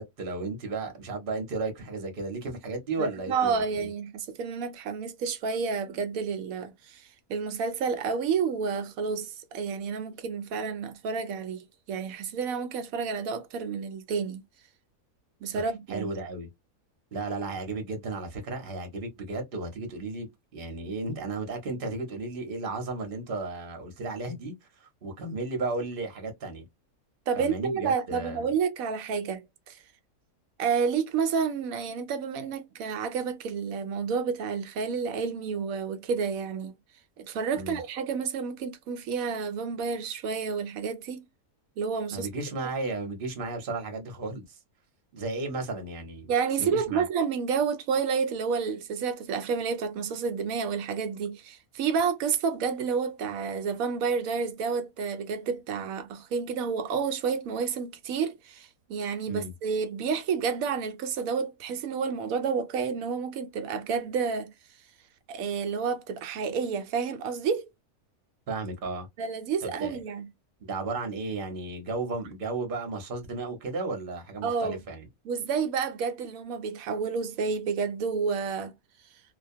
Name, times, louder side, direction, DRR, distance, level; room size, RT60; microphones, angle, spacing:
voice 1, 0.0-3.9 15.5-16.5 17.1-24.5 24.8-26.7 27.4-28.5 37.5-37.8 42.1-44.6 45.1-46.3 46.6-47.0 59.3-59.5 68.5-69.1 69.8-70.0 70.6-75.0, right 3 dB, 45° right, 0.9 m, -34 dB
voice 2, 3.0-14.4 15.4-16.1 27.3-29.8 30.6-36.7 37.2-41.3 41.8-42.3 46.3-64.5 65.3-67.7 69.2-70.3 74.4-74.8 75.2-78.7, right 6 dB, 75° right, 1.0 m, -30 dB
2.4 x 2.2 x 2.6 m
omnidirectional pair, 1.5 m